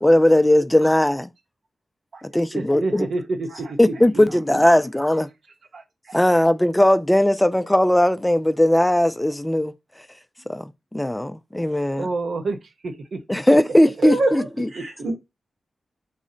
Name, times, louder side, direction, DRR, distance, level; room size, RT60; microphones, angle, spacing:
voice 1, 0.0-1.3 2.2-3.1 3.8-5.3 6.1-9.7 10.5-12.1 13.3-14.7, left 1 dB, 10° left, 0.3 m, -18 dB
voice 2, 2.1-4.2 5.7-6.2 12.0-13.2 14.8-14.9, right 3 dB, 70° right, 0.6 m, -29 dB
voice 3, 14.0-14.5 14.7-15.1, right 2 dB, 90° right, 1.2 m, -23 dB
3.9 x 2.1 x 3.7 m
cardioid pair, 70°, 0 cm